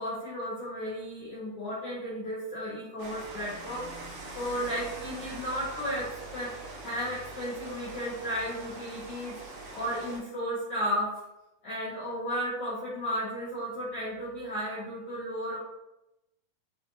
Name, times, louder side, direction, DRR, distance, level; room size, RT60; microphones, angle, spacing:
voice 1, 0.0-3.9 4.3-6.5 6.8-9.3 9.7-11.1 11.6-15.6, equal, 80° left, -7 dB, 1.3 m, -34 dB
Rain, 3.0-10.2, right 2 dB, 70° right, 2.2 m, -43 dB
6.8 x 2.9 x 2.6 m, 0.91 s
omnidirectional pair, 4.0 m